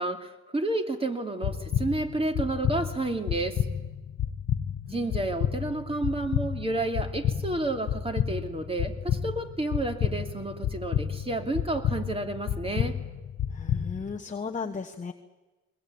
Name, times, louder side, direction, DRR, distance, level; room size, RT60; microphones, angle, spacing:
voice 1, 0.0-3.6 4.9-13.0, right 2 dB, 20° right, 5 dB, 2.6 m, -30 dB
sound 1, 1.4-14.1, left 9 dB, 60° left, 1.2 m, -31 dB
voice 2, 4.9-5.2 13.5-15.1, left 5 dB, 25° left, 4 dB, 1.2 m, -36 dB
21.5 x 20.0 x 8.7 m, 1.2 s
cardioid pair, 90°, 30 cm